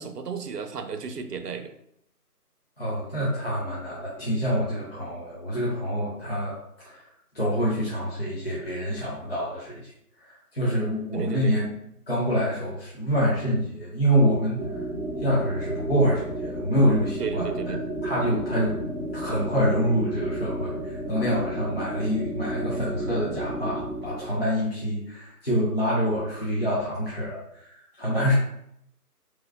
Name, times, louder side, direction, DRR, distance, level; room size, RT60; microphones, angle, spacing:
voice 1, 0.0-1.7 11.1-11.5 17.2-17.8, right 6 dB, 80° right, 7 dB, 0.6 m, -33 dB
voice 2, 2.8-7.0 7.3-9.9 10.2-11.7 12.1-14.8 15.2-17.7 18.0-18.8 19.1-28.3, equal, 40° left, -7 dB, 0.7 m, -26 dB
sound 1, 14.6-24.5, right 1 dB, 40° right, 1.2 m, -32 dB
3.6 x 3.1 x 2.2 m, 0.76 s
figure-of-eight pair, 165°, 47 cm